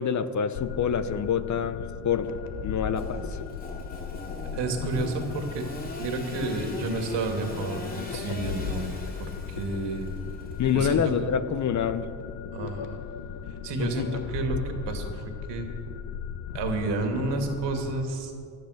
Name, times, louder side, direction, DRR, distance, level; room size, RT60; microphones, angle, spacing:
voice 1, 0.0-2.3 2.6-3.3 10.6-12.0 13.8-14.1, left 7 dB, 45° left, 12 dB, 0.9 m, -26 dB
sound 1, 0.6-18.0, left 7 dB, 75° left, 1.1 m, -37 dB
Engine / Sawing, 2.9-11.2, left 2 dB, 20° left, 2.7 m, -41 dB
voice 2, 4.5-5.7 6.0-8.9 9.2-10.1 10.7-11.1 12.5-13.0 13.5-15.7 16.5-18.3, right 3 dB, 85° right, 4 dB, 2.4 m, -31 dB
16.5 x 12.0 x 6.5 m, 2.4 s
cardioid pair, 105°, 41 cm